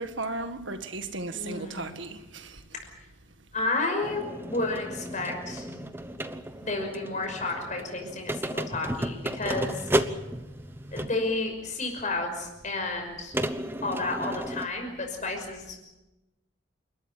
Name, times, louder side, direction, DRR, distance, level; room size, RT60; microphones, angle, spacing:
voice 1, 0.0-2.6, right 3 dB, 70° right, 1.8 m, -35 dB
voice 2, 1.3-2.0 3.5-4.2 4.5-5.7 6.6-9.9 10.9-13.3 13.8-15.8, left 2 dB, 40° left, 5.8 m, -31 dB
sound 1, 4.0-11.3 12.2-12.3 13.3-14.7, right 1 dB, 10° right, 1.0 m, -33 dB
28.5 x 13.0 x 9.2 m
head